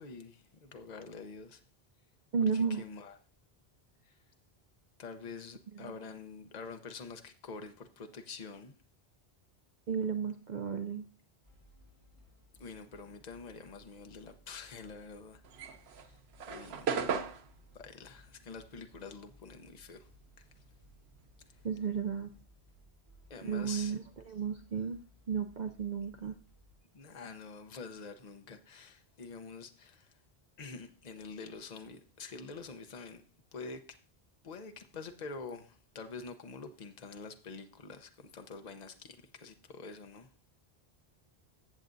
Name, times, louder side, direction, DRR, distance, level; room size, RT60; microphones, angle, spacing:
voice 1, 0.0-1.6 2.5-3.2 4.1-4.2 5.0-8.7 12.6-15.4 16.0-16.2 16.5-17.1 17.7-20.1 23.3-24.0 26.9-30.1 30.6-33.2 33.5-34.0 34.4-40.3, left 4 dB, 45° left, 0.9 m, -46 dB
voice 2, 2.3-2.8 5.7-5.9 9.9-11.1 21.6-22.3 23.4-25.0 25.3-26.4, right 6 dB, 50° right, 0.7 m, -33 dB
sound 1, 11.4-26.8, left 1 dB, 30° right, 4.8 m, -62 dB
sound 2, 15.4-20.2 20.4-22.4, right 6 dB, 85° right, 1.0 m, -38 dB
15.0 x 7.4 x 2.6 m
omnidirectional pair, 1.1 m